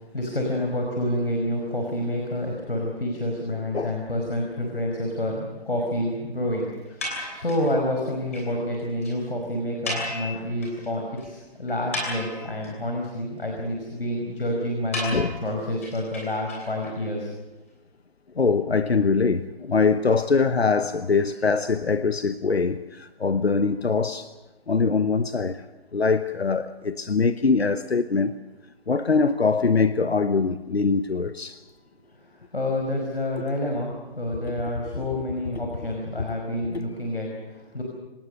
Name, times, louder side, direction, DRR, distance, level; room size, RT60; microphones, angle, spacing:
voice 1, 0.1-17.3 32.5-33.9 34.2-37.8, left 1 dB, 70° left, 5.2 m, -28 dB
sound 1, 7.0-7.7 8.0-8.1 8.3-8.5 8.7-8.8 9.0-9.1 9.8-10.9 11.2-11.3 11.7-12.7 14.9-16.9, left 1 dB, 15° left, 3.0 m, -33 dB
voice 2, 18.4-24.3 24.7-25.6 25.9-28.3 28.9-31.6, left 4 dB, 85° left, 1.1 m, -23 dB
25.0 x 19.0 x 6.6 m
figure-of-eight pair, 180°, 30 cm